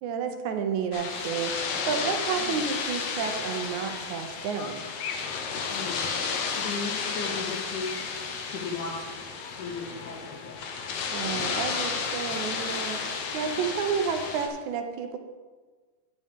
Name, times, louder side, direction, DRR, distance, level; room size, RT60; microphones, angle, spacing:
voice 1, 0.0-4.8 11.1-15.2, right 6 dB, 75° right, 6 dB, 2.1 m, -31 dB
sound 1, 0.9-14.5, left 5 dB, 65° left, 1.5 m, -32 dB
voice 2, 5.7-6.1 6.6-8.0 8.5-9.3 9.6-10.8, left 4 dB, 85° left, -1 dB, 3.1 m, -36 dB
10.5 x 8.6 x 3.6 m, 1.4 s
omnidirectional pair, 3.6 m